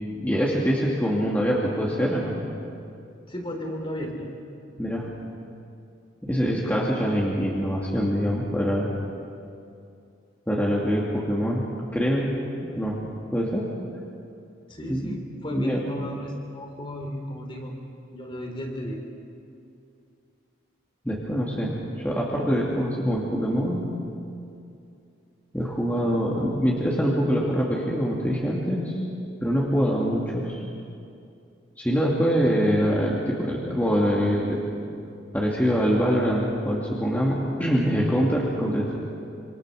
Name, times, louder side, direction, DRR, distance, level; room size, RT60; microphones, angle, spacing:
voice 1, 0.1-2.3 4.8-5.1 6.2-8.9 10.5-11.6 11.9-12.3 12.6-13.0 13.3-13.7 14.9-15.2 15.5-15.8 21.0-23.9 25.5-29.0 29.4-30.6 31.8-34.6 35.3-39.0, equal, 10° left, -4 dB, 2.5 m, -24 dB
voice 2, 3.3-4.3 14.7-17.7 18.1-19.1 32.2-32.6, left 1 dB, 25° left, 3 dB, 3.2 m, -34 dB
27.0 x 26.5 x 6.6 m, 2.5 s
head